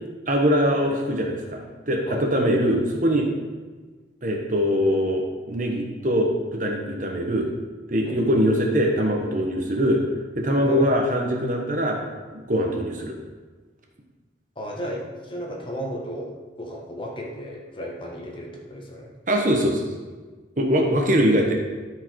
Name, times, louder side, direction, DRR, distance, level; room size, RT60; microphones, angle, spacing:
voice 1, 0.3-3.3 4.2-7.5 7.9-10.0 10.4-12.0 12.3-13.1 19.3-19.8 20.6-21.5, equal, 45° right, 1 dB, 1.3 m, -22 dB
voice 2, 14.5-19.1, equal, 25° left, -1 dB, 1.3 m, -34 dB
13.0 x 5.1 x 4.7 m, 1.4 s
head